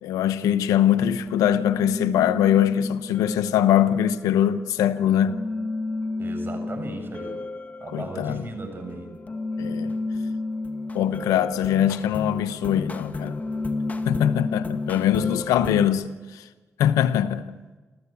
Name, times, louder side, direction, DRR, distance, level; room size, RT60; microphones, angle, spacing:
voice 1, 0.0-5.4 7.9-8.5 9.6-10.0 10.9-13.4 14.1-16.0 16.3-16.4 16.8-17.6, left 10 dB, 90° left, 0.9 m, -22 dB
sound 1, 1.3-15.9, left 3 dB, 30° left, 1.9 m, -32 dB
voice 2, 6.2-7.4 7.8-9.1 15.5-15.8, right 2 dB, 40° right, 7.1 m, -36 dB
27.5 x 14.5 x 8.4 m
supercardioid pair, 55°, 6 cm